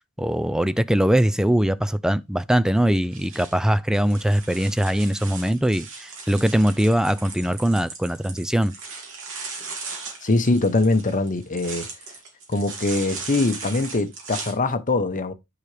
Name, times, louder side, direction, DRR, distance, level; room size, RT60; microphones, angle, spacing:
voice 1, 0.2-8.7, right 1 dB, 5° right, 0.3 m, -21 dB
sound 1, 3.0-14.5, right 4 dB, 60° right, 2.5 m, -38 dB
voice 2, 10.2-11.9 12.5-15.3, left 2 dB, 35° left, 0.9 m, -22 dB
9.3 x 4.9 x 3.3 m
head